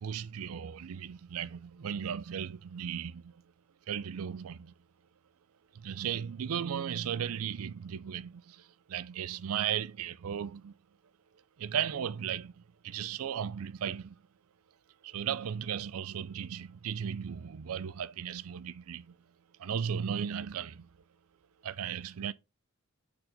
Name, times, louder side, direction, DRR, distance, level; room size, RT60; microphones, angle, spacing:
voice 1, 0.0-3.3 3.9-4.7 5.7-8.6 8.9-10.7 11.6-12.5 12.8-14.2 15.0-19.1 19.6-20.9 21.6-22.3, right 8 dB, 85° right, 0.4 m, -36 dB
6.6 x 4.3 x 4.0 m
head